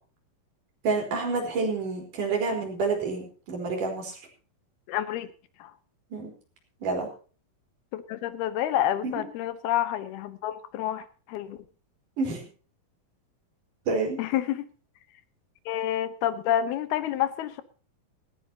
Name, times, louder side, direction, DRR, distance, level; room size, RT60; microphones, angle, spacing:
voice 1, 0.8-4.2 6.1-6.3 6.8-7.1 9.0-9.1 12.2-12.4 13.9-14.2, right 4 dB, 55° right, 1 dB, 5.7 m, -28 dB
voice 2, 4.9-5.3 5.6-5.7 7.9-11.6 14.2-14.7 15.7-17.6, left 11 dB, 80° left, 13 dB, 3.0 m, -28 dB
18.0 x 15.5 x 2.9 m, 0.39 s
omnidirectional pair, 4.5 m